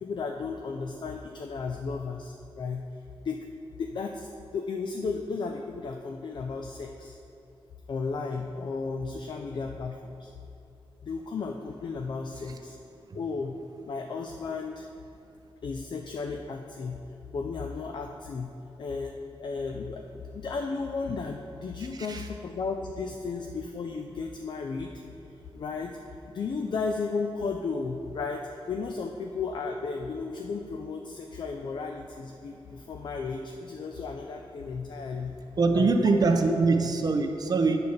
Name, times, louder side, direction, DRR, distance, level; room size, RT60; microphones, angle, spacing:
voice 1, 0.0-2.8 3.2-3.5 3.7-7.2 7.9-10.3 11.0-12.8 13.1-13.6 13.8-14.9 15.6-18.5 18.8-24.9 25.5-25.9 26.3-35.4 35.7-36.1, left 4 dB, 50° left, 3 dB, 0.4 m, -34 dB
voice 2, 35.6-37.8, right 3 dB, 40° right, 5 dB, 0.6 m, -24 dB
8.7 x 4.2 x 6.5 m, 2.7 s
wide cardioid pair, 155°, 10 cm